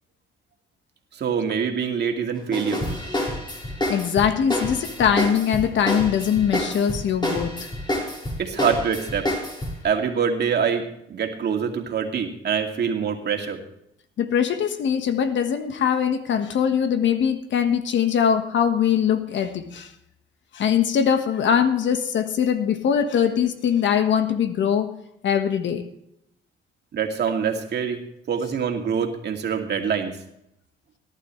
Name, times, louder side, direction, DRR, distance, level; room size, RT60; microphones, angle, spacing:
voice 1, 1.1-2.8 8.4-9.3 9.8-10.8 11.1-13.6 26.9-28.0 28.3-30.1, right 7 dB, 55° right, 3 dB, 2.2 m, -25 dB
sound 1, 2.5-9.8, left 1 dB, 20° left, 5.3 m, -28 dB
voice 2, 3.9-7.5 14.2-19.9 20.5-24.9 25.2-25.8, left 8 dB, 65° left, 8 dB, 1.5 m, -22 dB
18.5 x 11.5 x 3.2 m, 0.77 s
cardioid pair, 90°, 20 cm